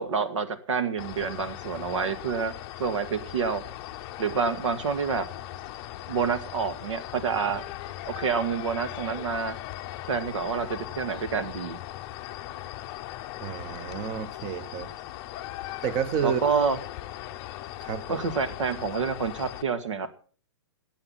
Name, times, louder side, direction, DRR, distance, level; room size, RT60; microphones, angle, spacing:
voice 1, 0.0-2.5 2.8-3.6 4.2-5.3 6.1-7.6 8.1-9.6 10.1-11.8 16.2-16.8 18.1-20.2, right 5 dB, 90° right, 2.1 m, -28 dB
sound 1, 1.0-19.6, left 14 dB, 25° left, 0.6 m, -39 dB
voice 2, 13.4-14.9 15.8-16.4 17.8-18.3, right 7 dB, 25° right, 0.8 m, -30 dB
15.0 x 8.7 x 5.7 m
hypercardioid pair, 165°, 15 cm